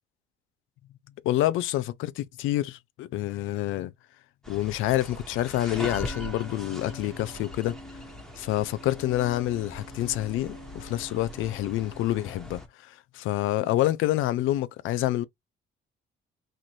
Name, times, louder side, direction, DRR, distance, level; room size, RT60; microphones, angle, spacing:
voice 1, 1.2-3.9 4.5-7.8 8.4-15.2, left 14 dB, 90° left, 0.5 m, -27 dB
sound 1, 4.4-12.7, equal, 5° left, 1.2 m, -40 dB
4.3 x 2.6 x 3.0 m
cardioid pair, 90°, 20 cm